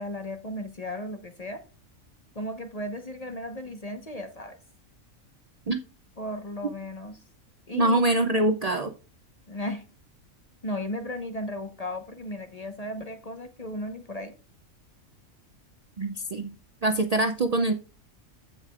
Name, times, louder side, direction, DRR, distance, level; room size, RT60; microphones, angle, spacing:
voice 1, 0.0-1.6 2.3-4.6 6.2-7.2 7.7-8.0 9.5-9.8 10.6-14.3, left 1 dB, 30° left, 1.1 m, -35 dB
voice 2, 7.7-8.9 16.0-16.5 16.8-17.7, right 2 dB, 65° right, 0.4 m, -24 dB
15.0 x 5.0 x 2.4 m
omnidirectional pair, 1.4 m